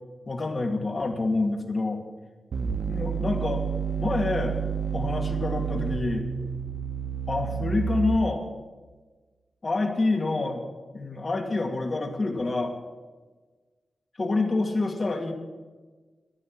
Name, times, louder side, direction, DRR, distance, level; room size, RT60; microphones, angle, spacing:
voice 1, 0.3-2.0 2.9-3.6 4.0-4.6 4.9-6.3 7.3-8.4 9.6-10.6 10.9-12.7 14.2-15.3, left 3 dB, 40° left, 3 dB, 2.5 m, -27 dB
sound 1, 2.5-8.5, right 6 dB, 80° right, 0.8 m, -30 dB
15.0 x 9.7 x 9.7 m, 1.3 s
wide cardioid pair, 120°, 0 cm